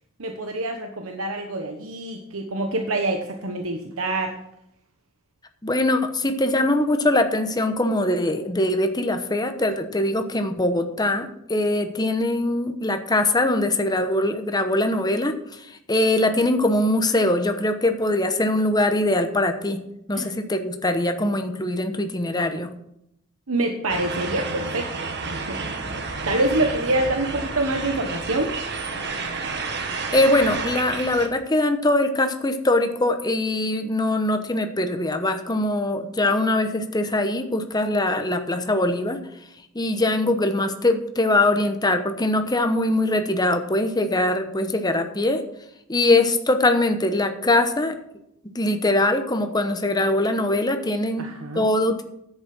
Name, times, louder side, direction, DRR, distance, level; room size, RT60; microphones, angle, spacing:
voice 1, 0.2-4.3 20.1-20.2 23.5-24.9 25.3-25.6 26.3-28.5 51.2-51.6, right 2 dB, 65° right, 4 dB, 1.2 m, -26 dB
voice 2, 5.6-19.8 20.1-22.7 30.1-39.2 39.7-45.4 45.9-48.0 48.5-51.3 51.5-52.0, left 1 dB, 20° left, 7 dB, 1.0 m, -22 dB
sound 1, 23.9-31.3, right 4 dB, 50° right, 1.4 m, -30 dB
10.5 x 8.2 x 6.0 m, 0.79 s
head